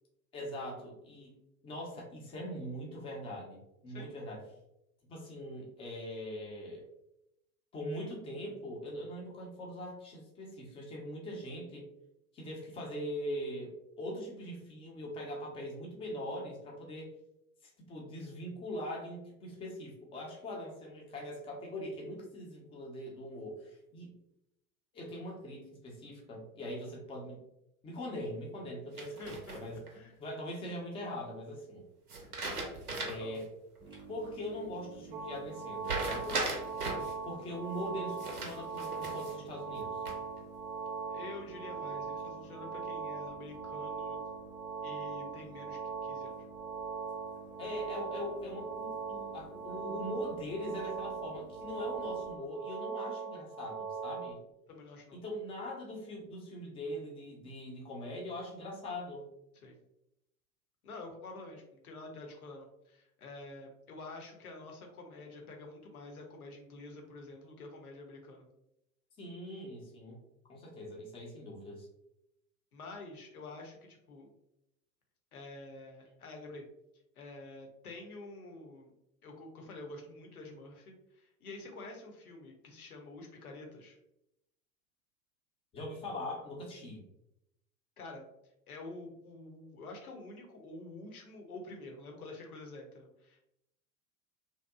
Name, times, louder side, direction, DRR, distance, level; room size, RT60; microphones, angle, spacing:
voice 1, 0.3-1.4 1.6-4.4 5.1-6.9 7.7-11.9 12.3-17.1 17.6-24.1 24.9-27.4 27.8-29.8 30.2-31.9 33.0-33.5 34.1-36.4 37.2-40.0 47.6-54.4 55.1-59.3 69.2-70.2 70.5-71.9 85.7-87.0, equal, 15° left, -2 dB, 0.5 m, -41 dB
sound 1, 29.0-29.9 32.1-33.4 33.8-33.9 35.8-37.1 38.2-39.4 39.8-40.4, right 2 dB, 85° right, 0.6 m, -37 dB
voice 2, 29.2-30.1 33.2-33.4 36.8-37.0 41.1-44.2 44.8-46.5 54.7-55.2 59.6-59.8 60.8-68.5 72.7-74.3 75.3-76.6 77.1-78.9 79.2-84.0 88.0-88.3 88.7-93.4, left 2 dB, 75° left, 2 dB, 0.8 m, -48 dB
sound 2, 33.8-52.3, right 3 dB, 10° right, 0.8 m, -53 dB
sound 3, 35.1-54.3, right 5 dB, 45° right, 0.5 m, -40 dB
2.7 x 2.0 x 2.3 m, 0.84 s
figure-of-eight pair, 85°, 44 cm